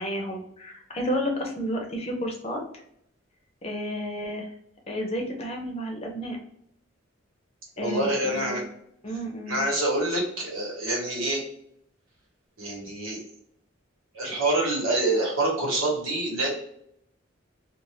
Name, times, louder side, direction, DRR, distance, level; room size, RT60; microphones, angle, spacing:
voice 1, 0.0-2.6 3.6-4.5 4.9-6.4 7.8-8.6 9.0-9.6, equal, 30° left, 1 dB, 0.7 m, -31 dB
voice 2, 7.8-8.6 9.5-11.4 12.6-13.2 14.1-16.5, right 2 dB, 90° right, -3 dB, 1.4 m, -26 dB
2.6 x 2.4 x 3.1 m, 0.72 s
head